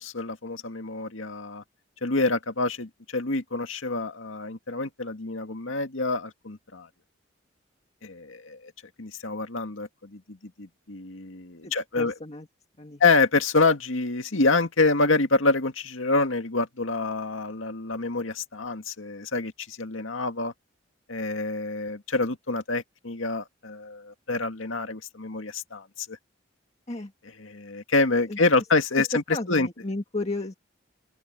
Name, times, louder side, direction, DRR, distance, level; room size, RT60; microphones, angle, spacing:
voice 1, 0.0-1.6 2.0-6.9 8.0-8.7 9.0-12.1 13.0-20.5 21.1-26.2 27.4-29.2 29.5-29.7, left 3 dB, 90° left, 2.0 m, -27 dB
voice 2, 11.6-12.5 12.8-13.0 26.9-27.1 28.3-28.4 29.0-30.5, left 2 dB, 35° left, 1.9 m, -33 dB
open air
head